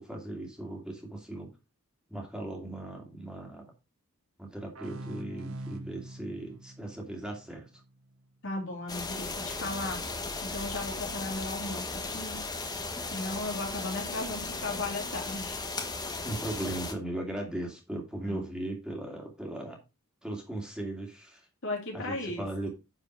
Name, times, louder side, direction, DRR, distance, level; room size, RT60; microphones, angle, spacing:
voice 1, 0.0-1.5 2.1-3.7 4.4-7.7 16.2-19.8 20.2-21.5 21.9-22.7, right 1 dB, 5° right, 0 dB, 2.7 m, -38 dB
sound 1, 4.7-8.2, right 1 dB, 75° right, 1.6 m, -44 dB
voice 2, 8.4-10.0 10.4-12.4 13.1-15.6 18.2-18.4 21.6-22.5, left 2 dB, 60° left, 1 dB, 2.8 m, -36 dB
sound 2, 8.9-16.9, left 3 dB, 20° left, 1.3 m, -36 dB
10.5 x 5.0 x 4.7 m, 0.27 s
head